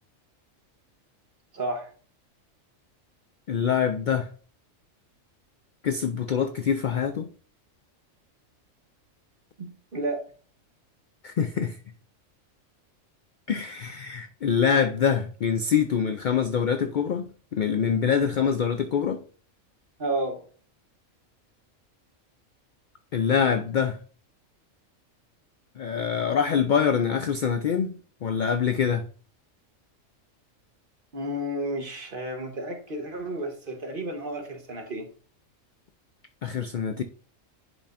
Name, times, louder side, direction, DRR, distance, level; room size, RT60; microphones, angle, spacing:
voice 1, 1.5-1.9 9.6-10.2 20.0-20.4 31.1-35.1, right 1 dB, 45° right, 1.3 m, -32 dB
voice 2, 3.5-4.3 5.8-7.3 11.2-11.8 13.5-19.2 23.1-24.0 25.8-29.0 36.4-37.0, left 7 dB, 80° left, 0.4 m, -25 dB
10.0 x 5.2 x 2.5 m
omnidirectional pair, 1.4 m